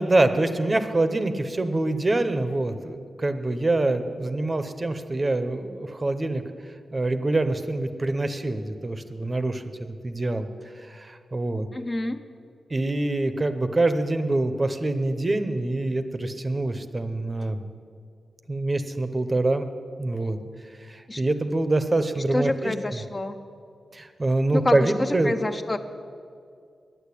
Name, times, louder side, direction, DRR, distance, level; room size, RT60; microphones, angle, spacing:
voice 1, 0.0-6.4 6.9-10.5 10.7-11.7 12.7-17.6 18.5-19.7 20.0-20.4 20.9-23.0 23.9-25.3, right 2 dB, 25° right, 9 dB, 0.7 m, -25 dB
voice 2, 11.7-12.2 21.1-21.2 22.3-23.4 24.5-25.8, left 2 dB, 25° left, 8 dB, 0.5 m, -27 dB
10.0 x 8.9 x 8.3 m, 2.3 s
wide cardioid pair, 130°, 0 cm